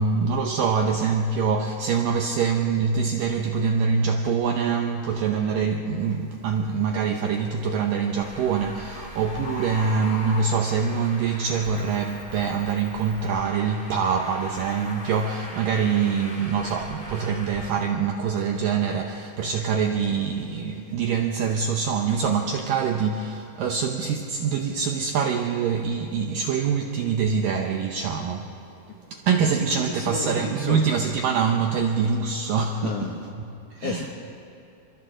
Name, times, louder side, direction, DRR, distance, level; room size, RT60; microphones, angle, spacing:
voice 1, 0.0-28.5 29.1-34.1, right 6 dB, 80° right, 2.0 m, -25 dB
Bird, 6.0-6.2 6.8-7.2 8.3-8.4 8.6-8.7 8.9-9.0 9.3-11.0 11.6-11.7, left 2 dB, 50° left, 4.4 m, -37 dB
Traffic noise roadway noise, 8.2-17.7, left 1 dB, 25° left, 1.0 m, -41 dB
voice 2, 29.8-30.8 32.8-33.1 33.8-34.1, left 6 dB, 70° left, 2.0 m, -32 dB
29.0 x 26.0 x 3.8 m
omnidirectional pair, 5.1 m